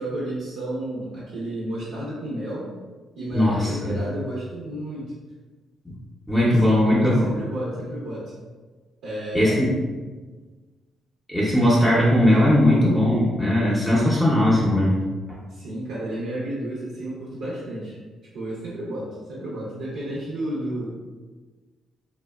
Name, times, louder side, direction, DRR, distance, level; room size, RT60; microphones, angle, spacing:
voice 1, 0.0-2.7 3.2-5.1 6.4-8.3 9.0-9.6 15.5-18.0 18.3-20.9, right 1 dB, 85° right, -7 dB, 0.6 m, -32 dB
voice 2, 3.3-3.9 6.3-7.3 9.3-9.7 11.3-15.0, left 1 dB, 5° left, -6 dB, 0.6 m, -19 dB
2.7 x 2.1 x 2.3 m, 1.3 s
cardioid pair, 90°, 0 cm